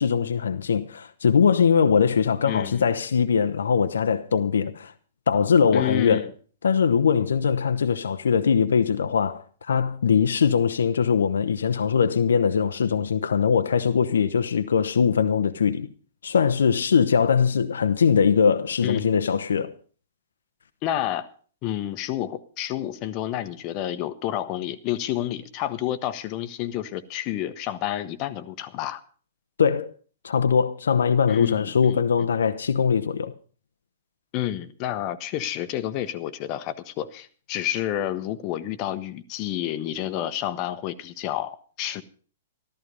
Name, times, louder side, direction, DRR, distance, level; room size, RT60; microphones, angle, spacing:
voice 1, 0.0-4.9 5.3-6.3 6.6-15.9 16.2-19.7 29.6-29.9 30.2-33.3, left 6 dB, 70° left, 0.8 m, -21 dB
voice 2, 2.4-2.9 5.7-6.3 18.8-19.1 20.8-21.3 21.6-29.0 31.3-32.0 34.3-42.0, left 12 dB, 40° left, 1.1 m, -29 dB
14.0 x 13.5 x 5.3 m
figure-of-eight pair, 110°, 0 cm